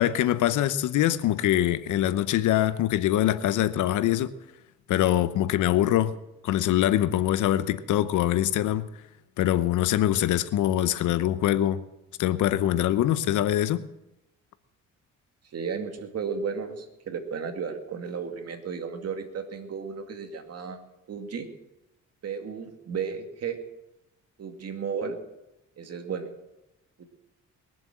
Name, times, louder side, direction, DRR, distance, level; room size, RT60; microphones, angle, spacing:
voice 1, 0.0-4.3 4.9-6.2 6.4-8.9 9.4-11.8 12.2-13.8, left 12 dB, 85° left, 0.8 m, -23 dB
voice 2, 15.5-20.8 21.1-21.5 22.2-23.6 24.4-25.2 25.8-26.3 27.0-27.1, right 6 dB, 55° right, 2.3 m, -34 dB
21.5 x 7.5 x 7.4 m
cardioid pair, 90°, 30 cm